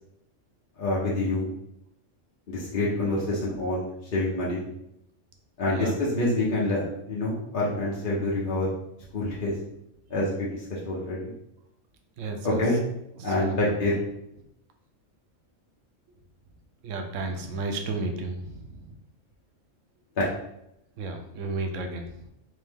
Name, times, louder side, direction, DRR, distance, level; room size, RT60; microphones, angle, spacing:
voice 1, 0.8-1.5 2.5-4.6 5.6-6.8 7.1-8.7 9.1-9.6 10.1-11.3 12.4-12.8 13.2-14.0, left 2 dB, 45° left, -7 dB, 0.9 m, -27 dB
voice 2, 12.2-12.6 13.2-13.7 16.8-18.9 21.0-22.0, right 3 dB, 75° right, 4 dB, 1.0 m, -32 dB
3.6 x 3.2 x 3.5 m, 0.80 s
omnidirectional pair, 1.3 m